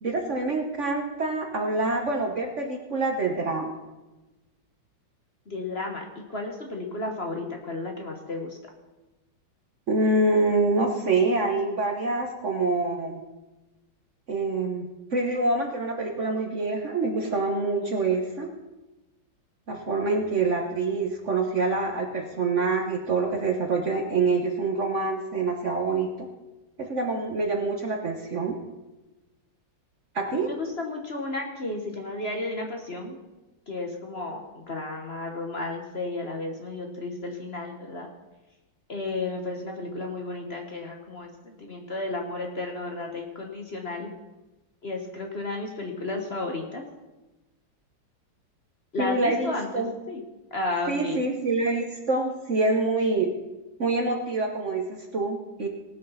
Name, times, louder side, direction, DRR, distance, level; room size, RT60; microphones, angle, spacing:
voice 1, 0.0-3.7 9.9-13.2 14.3-18.5 19.7-26.3 26.8-28.6 30.1-30.5 49.0-49.9 50.9-53.4 53.8-55.7, right 3 dB, 45° right, 3 dB, 1.2 m, -26 dB
voice 2, 5.5-8.6 30.3-33.1 33.7-38.1 38.9-44.1 44.8-46.8 48.9-50.2 50.5-51.2, left 2 dB, 35° left, 2 dB, 1.3 m, -33 dB
18.5 x 6.4 x 5.6 m, 1.1 s
omnidirectional pair, 2.0 m